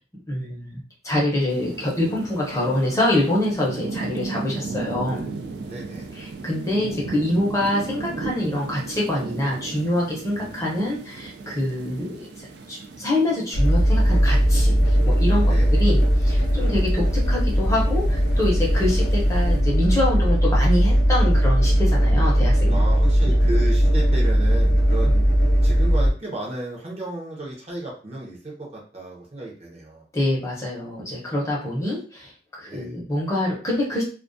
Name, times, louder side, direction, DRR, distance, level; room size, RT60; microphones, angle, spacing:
voice 1, 0.3-5.3 6.1-22.8 30.1-32.3 32.6-34.0, left 1 dB, 15° left, -4 dB, 0.6 m, -25 dB
sound 1, 1.5-19.6, right 3 dB, 60° right, 0.3 m, -36 dB
voice 2, 5.6-6.1 10.3-10.7 13.5-13.6 15.4-15.7 18.6-19.0 22.7-25.3 25.6-30.1 32.6-32.9, right 1 dB, 35° right, -2 dB, 0.6 m, -34 dB
sound 2, 13.5-26.1, equal, 65° left, 0.5 m, -18 dB
2.2 x 2.2 x 2.5 m, 0.39 s
head